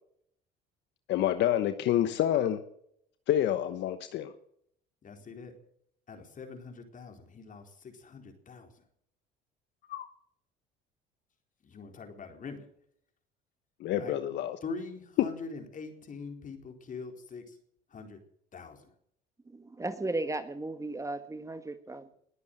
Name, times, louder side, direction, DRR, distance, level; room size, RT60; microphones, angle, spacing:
voice 1, 1.1-2.6 3.3-4.3 9.9-10.1 13.8-14.6, left 11 dB, 65° left, 1.1 m, -28 dB
voice 2, 5.0-5.5 6.1-8.8 11.6-12.6 13.9-14.2 14.6-17.6 17.9-18.2 18.5-18.9, left 4 dB, 45° left, 4.2 m, -43 dB
voice 3, 19.5-22.1, right 2 dB, 15° right, 1.6 m, -35 dB
20.5 x 8.4 x 8.0 m
supercardioid pair, 75°, 20 cm